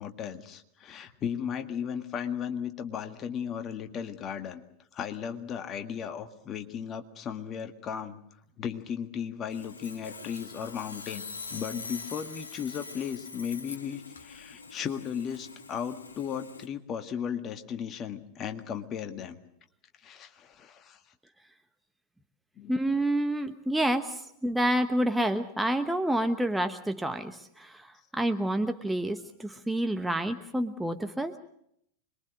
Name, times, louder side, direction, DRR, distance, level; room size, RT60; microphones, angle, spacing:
voice 1, 0.0-4.6 4.9-8.2 8.6-11.2 11.5-19.4 20.0-21.0 22.6-22.8, left 8 dB, 30° left, 7 dB, 1.9 m, -36 dB
Sawing, 9.5-16.7, left 4 dB, 70° left, 1.5 m, -44 dB
voice 2, 22.7-31.4, right 1 dB, 5° right, 6 dB, 1.0 m, -28 dB
26.0 x 22.0 x 6.4 m, 0.72 s
figure-of-eight pair, 90°, 0 cm